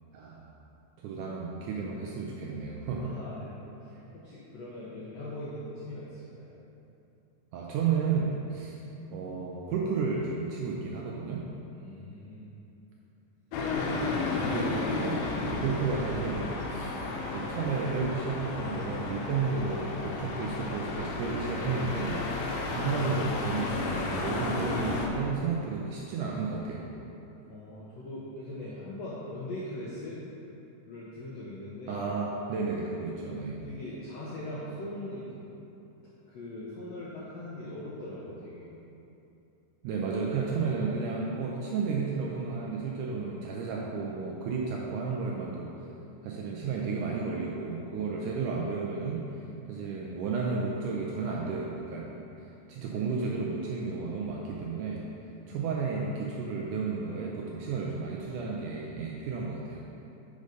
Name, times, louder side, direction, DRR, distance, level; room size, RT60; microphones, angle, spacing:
voice 1, 0.1-0.5 1.0-3.1 7.5-8.8 9.1-11.4 14.4-17.0 17.3-22.2 22.7-26.8 31.9-33.6 39.8-45.7 46.2-49.2 49.7-52.2 52.7-55.1 55.5-59.8, right 4 dB, 80° right, -2 dB, 1.9 m, -32 dB
voice 2, 3.0-6.6 11.7-12.5 13.7-14.1 27.5-30.2 30.8-32.0 33.5-35.4 36.3-38.7 55.4-55.7, left 1 dB, 75° left, -8 dB, 1.6 m, -41 dB
sound 1, 13.5-25.1, left 3 dB, 90° left, 2.6 m, -33 dB
6.7 x 5.2 x 5.0 m, 2.9 s
omnidirectional pair, 4.1 m